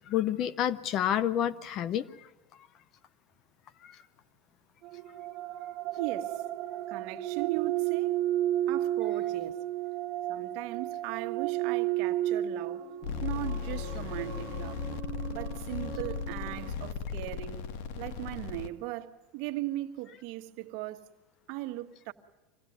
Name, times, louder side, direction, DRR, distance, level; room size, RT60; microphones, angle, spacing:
voice 1, 0.1-2.3 3.8-4.0, left 10 dB, 40° left, 0.8 m, -29 dB
sound 1, 4.8-16.7, right 13 dB, 40° right, 2.0 m, -33 dB
voice 2, 6.0-6.4 6.9-8.2 8.7-9.6 10.3-12.9 13.2-14.8 15.3-17.6 18.0-21.1 21.5-22.1, right 15 dB, 60° right, 1.5 m, -38 dB
sound 2, 13.0-18.7, left 6 dB, 65° left, 1.6 m, -36 dB
25.5 x 17.0 x 9.4 m
supercardioid pair, 135°, 0 cm